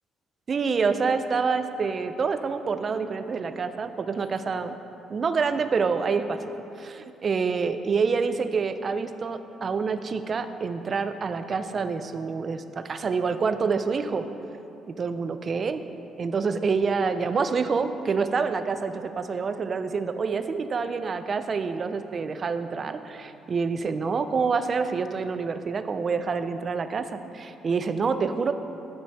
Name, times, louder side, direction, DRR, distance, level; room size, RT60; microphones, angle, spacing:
voice 1, 0.5-4.8 5.1-14.3 15.0-15.8 16.2-28.5, right 5 dB, 35° right, 10 dB, 0.4 m, -27 dB
11.0 x 5.2 x 4.2 m, 2.9 s
cardioid pair, 135°, 0 cm